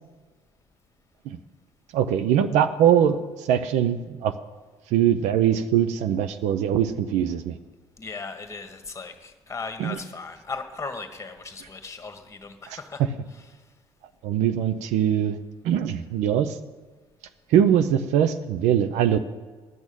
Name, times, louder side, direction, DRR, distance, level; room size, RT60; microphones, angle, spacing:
voice 1, 1.9-4.3 4.9-7.6 9.8-10.0 12.7-13.1 14.2-15.4 15.6-16.6 17.5-19.2, right 9 dB, 75° right, 10 dB, 0.6 m, -22 dB
voice 2, 8.0-13.5, left 4 dB, 25° left, 7 dB, 1.4 m, -37 dB
11.0 x 6.2 x 8.8 m, 1.4 s
supercardioid pair, 65°, 12 cm